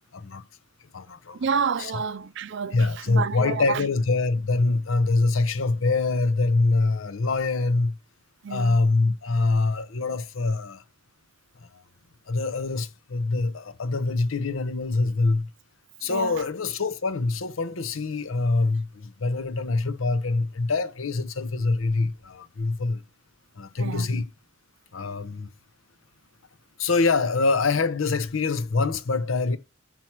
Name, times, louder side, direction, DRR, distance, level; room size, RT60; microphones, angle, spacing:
voice 1, 0.1-0.4 0.9-1.5 1.8-2.0 2.7-8.0 8.5-10.8 12.3-15.5 16.0-23.0 23.6-24.2 24.9-25.5 26.8-29.6, left 3 dB, 85° left, 0.7 m, -24 dB
voice 2, 1.3-3.9 8.4-8.8 16.1-16.4 23.8-24.2, right 6 dB, 65° right, 0.5 m, -29 dB
5.9 x 4.6 x 5.9 m
head